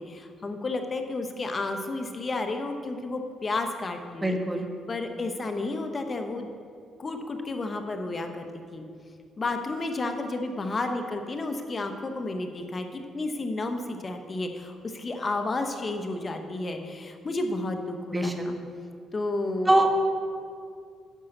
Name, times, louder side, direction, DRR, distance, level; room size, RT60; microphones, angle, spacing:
voice 1, 0.0-4.4 4.9-6.5 7.0-8.5 8.7-8.9 9.4-18.6 19.1-19.9, left 2 dB, 35° left, 5 dB, 1.0 m, -31 dB
voice 2, 4.2-4.6 18.1-18.5 19.7-19.9, right 1 dB, 15° right, 4 dB, 1.2 m, -23 dB
10.0 x 5.6 x 6.6 m, 2.2 s
cardioid pair, 90°, 0 cm